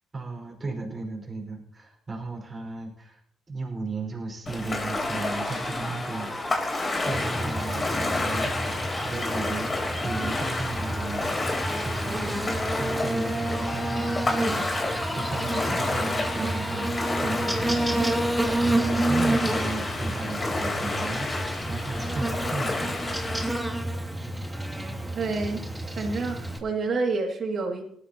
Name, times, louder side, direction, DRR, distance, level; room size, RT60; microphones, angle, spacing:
voice 1, 0.1-3.2 3.5-12.4 12.7-23.0, right 3 dB, 30° right, -1 dB, 5.1 m, -35 dB
Ocean, 4.5-23.5, left 2 dB, 30° left, 3.6 m, -30 dB
sound 1, 4.9-9.2 10.0-13.1 13.5-17.4, equal, 10° left, 5.1 m, -38 dB
Buzz, 7.0-26.6, right 1 dB, 5° right, 2.3 m, -30 dB
voice 2, 25.1-25.6 26.0-27.8, right 3 dB, 55° right, 3 dB, 2.4 m, -28 dB
18.5 x 13.0 x 2.9 m, 0.65 s
cardioid pair, 90°, 0 cm